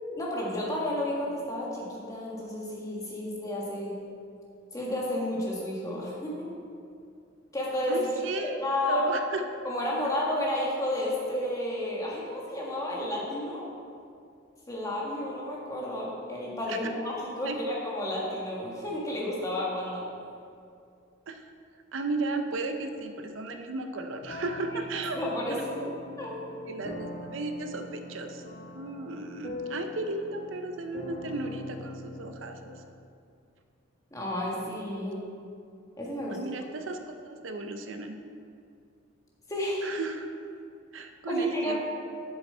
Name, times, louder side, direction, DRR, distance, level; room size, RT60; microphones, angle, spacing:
voice 1, 0.0-3.9 4.7-6.5 7.5-8.1 8.4-9.1 9.6-13.6 14.7-20.0 24.7-24.8 25.2-25.9 26.2-26.6 34.1-35.2 36.0-36.4 39.5-39.8 41.3-41.9, left 1 dB, 15° left, -4 dB, 1.5 m, -31 dB
voice 2, 7.9-8.6 8.9-9.4 16.7-16.8 17.4-17.6 21.3-21.5 21.9-25.2 25.8-25.9 26.7-28.4 28.7-32.8 36.3-38.2 39.8-40.3 40.9-41.9, right 3 dB, 75° right, 6 dB, 0.6 m, -35 dB
sound 1, 24.2-32.8, left 2 dB, 40° left, 0.9 m, -42 dB
7.4 x 7.0 x 4.4 m, 2.4 s
head